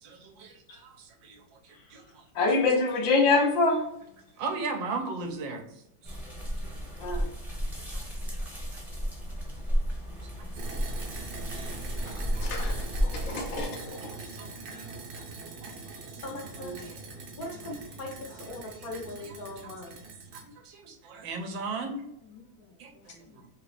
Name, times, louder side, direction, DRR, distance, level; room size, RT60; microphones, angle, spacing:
voice 1, 0.0-2.2 4.4-6.1 7.9-8.0 8.4-8.5 10.2-10.3 10.9-11.3 11.6-12.4 12.7-13.6 14.0-15.2 15.6-15.7 16.0-16.4 16.8-17.0 17.5-17.8 18.3-19.7 20.3-21.9 22.8-23.5, right 4 dB, 80° right, 4 dB, 1.4 m, -40 dB
voice 2, 1.7-2.1 16.2-16.7 17.3-20.0 22.0-23.4, left 2 dB, 60° left, 0 dB, 1.1 m, -42 dB
voice 3, 2.3-3.8 7.0-7.3 12.1-14.2 16.6-16.8, left 3 dB, 80° left, 2 dB, 1.6 m, -26 dB
sound 1, 6.0-13.6, equal, ahead, 0.7 m, -32 dB
sound 2, 10.6-20.4, right 3 dB, 60° right, 1.2 m, -43 dB
3.8 x 2.9 x 3.1 m, 0.78 s
omnidirectional pair, 2.1 m